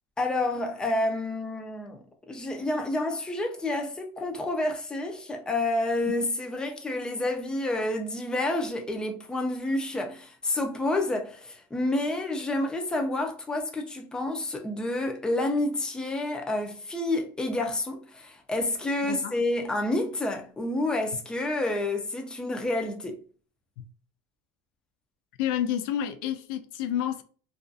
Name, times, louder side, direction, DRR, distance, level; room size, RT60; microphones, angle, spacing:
voice 1, 0.2-2.0 2.3-23.1, left 2 dB, 5° left, 0.4 m, -29 dB
voice 2, 25.4-27.2, left 10 dB, 80° left, 0.4 m, -29 dB
2.5 x 2.4 x 2.3 m
cardioid pair, 150°, 11 cm